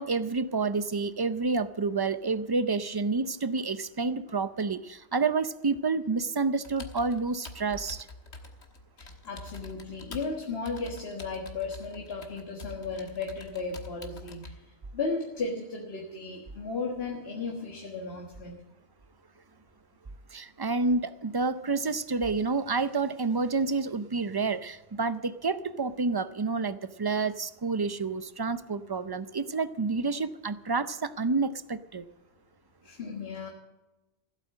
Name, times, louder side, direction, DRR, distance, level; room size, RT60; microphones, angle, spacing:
voice 1, 0.0-8.1 20.3-32.0, right 4 dB, 30° right, 13 dB, 0.4 m, -29 dB
Computer keyboard, 6.6-14.5, left 2 dB, 85° left, 1.7 m, -46 dB
voice 2, 9.0-18.6 32.8-33.5, left 4 dB, 65° left, 1 dB, 1.7 m, -35 dB
15.5 x 8.4 x 7.5 m, 1.0 s
omnidirectional pair, 1.1 m